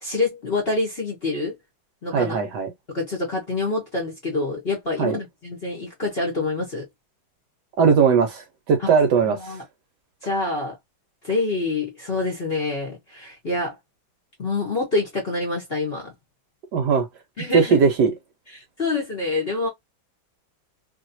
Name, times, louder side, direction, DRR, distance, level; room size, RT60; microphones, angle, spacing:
voice 1, 0.0-1.5 2.0-2.4 2.9-6.9 8.8-8.9 9.3-9.6 10.2-10.8 11.2-13.7 14.4-16.1 17.4-17.8 18.5-19.7, left 3 dB, 40° left, 1.0 m, -26 dB
voice 2, 2.1-2.7 5.0-5.2 7.8-9.6 16.7-17.1 17.5-18.1, right 5 dB, 70° right, 1.1 m, -19 dB
3.2 x 2.8 x 2.6 m
omnidirectional pair, 2.2 m